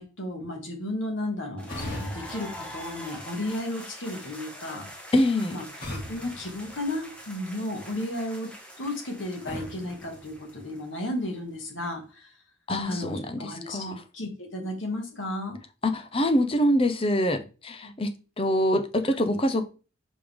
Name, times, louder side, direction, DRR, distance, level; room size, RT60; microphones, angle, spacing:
voice 1, 0.0-4.9 5.5-5.6 6.1-8.5 8.8-12.0 12.9-15.6, left 1 dB, 80° left, 1.9 m, -33 dB
sound 1, 1.6-11.4, equal, 5° left, 1.2 m, -44 dB
sound 2, 1.7-3.6 5.8-7.5 9.4-11.1, left 1 dB, 50° left, 2.7 m, -41 dB
voice 2, 5.1-5.6 12.7-14.0 15.8-19.7, left 1 dB, 30° left, 0.7 m, -25 dB
5.4 x 5.2 x 3.6 m
head